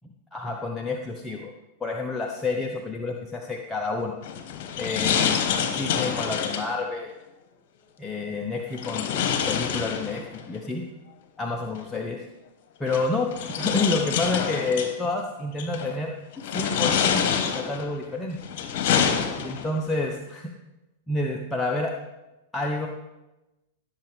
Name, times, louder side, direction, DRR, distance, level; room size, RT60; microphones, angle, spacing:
voice 1, 0.3-1.5 1.8-4.2 4.8-5.4 5.8-7.1 8.0-10.8 11.4-12.2 12.8-13.3 13.6-18.4 19.3-20.5 21.1-21.9 22.5-22.9, left 3 dB, 10° left, 0 dB, 0.9 m, -29 dB
sound 1, 4.2-6.8 8.8-10.4 11.8-11.9 12.9-14.9 15.6-16.0 16.4-17.9 18.4-19.8, left 7 dB, 55° left, 1.2 m, -26 dB
16.0 x 7.1 x 3.5 m, 1.0 s
hypercardioid pair, 100°, 0 cm